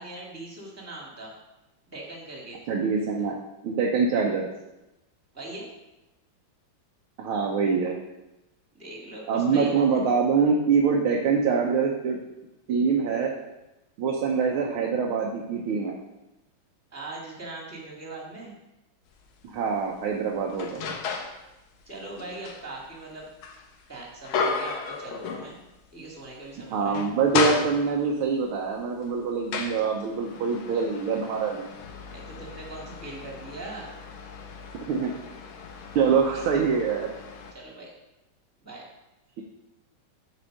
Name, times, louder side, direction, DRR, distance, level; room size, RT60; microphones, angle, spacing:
voice 1, 0.0-1.3 1.9-2.6 5.3-5.7 8.8-10.0 16.9-18.5 21.9-23.3 23.9-25.6 25.9-27.0 32.1-33.9 37.5-37.9 38.6-38.8, right 2 dB, 10° right, -2 dB, 1.6 m, -40 dB
voice 2, 2.7-3.4 3.6-4.5 7.2-7.9 9.3-12.2 12.7-13.3 14.0-16.0 19.4-20.8 26.7-31.6 34.7-35.1 36.0-37.1, right 5 dB, 85° right, 0 dB, 1.7 m, -24 dB
sound 1, 19.1-19.3 19.8-21.4 21.8-25.9 26.2-26.4 26.8-28.2 28.9-37.5, left 5 dB, 85° left, 1.7 m, -34 dB
7.2 x 4.4 x 6.4 m, 0.96 s
omnidirectional pair, 2.2 m